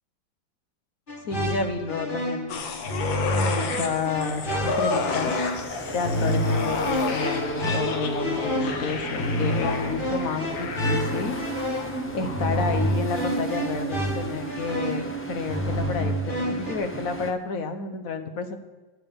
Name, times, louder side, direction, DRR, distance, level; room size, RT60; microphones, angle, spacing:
sound 1, 1.1-16.7, equal, 30° left, 1.5 m, -29 dB
voice 1, 1.2-2.6 3.4-5.3 5.9-11.4 12.1-18.6, left 4 dB, 55° left, 7 dB, 1.3 m, -30 dB
sound 2, 2.5-14.0 14.4-14.5, left 4 dB, 90° left, 1.9 m, -32 dB
sound 3, 3.9-17.3, right 2 dB, 10° left, 0.6 m, -35 dB
13.0 x 7.8 x 7.0 m, 1.2 s
omnidirectional pair, 2.1 m